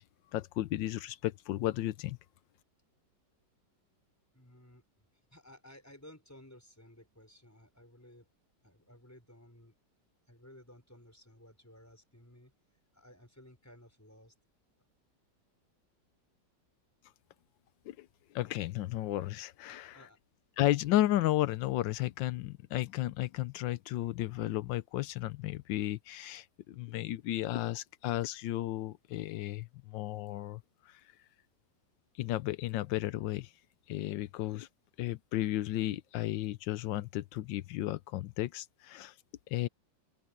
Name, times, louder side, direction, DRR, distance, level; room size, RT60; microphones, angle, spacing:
voice 1, 0.3-2.2 17.9-20.1 20.6-31.1 32.1-33.5 33.9-34.7 35.0-39.2 39.5-39.7, left 15 dB, 85° left, 1.4 m, -33 dB
voice 2, 4.3-4.8 5.3-8.3 8.6-9.7 10.3-12.5 12.9-14.3 19.7-20.2, left 1 dB, 10° left, 5.4 m, -56 dB
open air
omnidirectional pair, 2.0 m